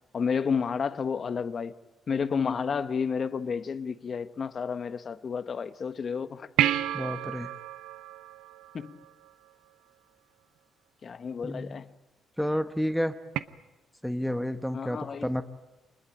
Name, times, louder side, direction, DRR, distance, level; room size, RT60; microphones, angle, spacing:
voice 1, 0.1-1.7 2.1-6.5 8.7-9.0 11.0-11.8 14.7-15.3, left 6 dB, 45° left, 1.2 m, -31 dB
sound 1, 6.6-9.3 13.3-13.4, right 12 dB, 85° right, 0.9 m, -30 dB
voice 2, 6.9-7.5 11.4-11.8 12.4-13.2 14.0-15.4, equal, ahead, 1.2 m, -30 dB
26.0 x 20.5 x 9.0 m
cardioid pair, 90°, 0 cm